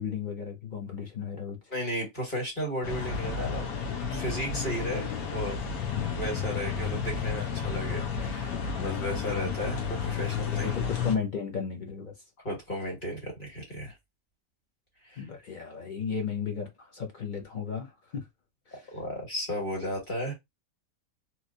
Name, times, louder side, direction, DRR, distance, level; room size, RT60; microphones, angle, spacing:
voice 1, 0.0-1.7 10.6-12.1 15.2-18.3 18.7-18.9, left 6 dB, 50° left, 0.6 m, -34 dB
voice 2, 1.7-3.7 4.1-5.6 6.1-10.8 12.4-13.9 15.1-15.2 18.7-20.3, equal, 35° left, 1.6 m, -34 dB
sound 1, 2.8-11.2, left 6 dB, 80° left, 1.2 m, -32 dB
3.0 x 2.9 x 2.6 m
omnidirectional pair, 1.5 m